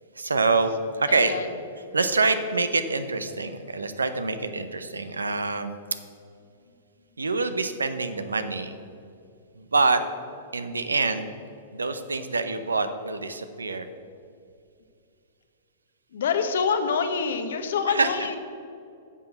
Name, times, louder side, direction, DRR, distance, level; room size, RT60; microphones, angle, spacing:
voice 1, 0.2-1.3 1.9-5.7 7.2-8.8 9.6-10.0 10.5-11.3 11.7-13.9 17.9-18.1, right 3 dB, 90° right, 10 dB, 0.7 m, -25 dB
voice 2, 1.1-1.6 16.1-18.4, left 6 dB, 70° left, 8 dB, 1.0 m, -26 dB
9.4 x 6.3 x 6.6 m, 2.5 s
hypercardioid pair, 110°, 0 cm